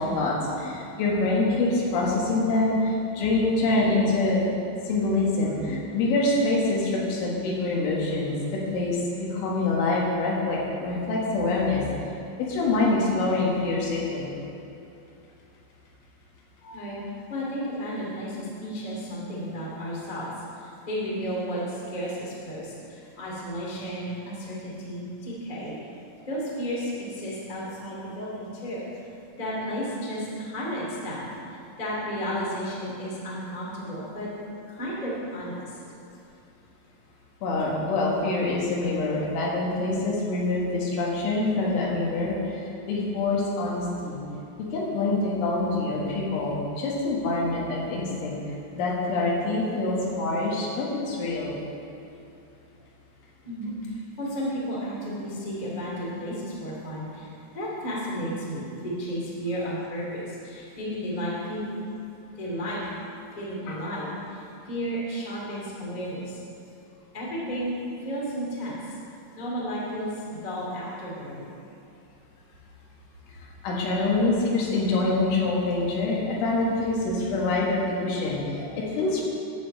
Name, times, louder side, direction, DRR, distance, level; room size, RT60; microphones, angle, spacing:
voice 1, 0.0-4.4 4.9-9.0 9.3-11.8 12.4-14.3 16.6-16.7 37.4-42.4 42.8-44.2 44.6-48.4 48.7-51.6 63.7-63.8 73.6-79.2, left 2 dB, 85° left, -4 dB, 4.1 m, -25 dB
voice 2, 17.3-20.3 20.6-25.7 26.2-28.9 29.3-34.3 34.7-35.8 53.4-61.7 62.3-62.8 63.3-66.4 67.1-68.8 69.3-71.4, equal, 30° left, -6 dB, 0.7 m, -33 dB
11.5 x 4.7 x 7.7 m, 2.8 s
omnidirectional pair, 5.4 m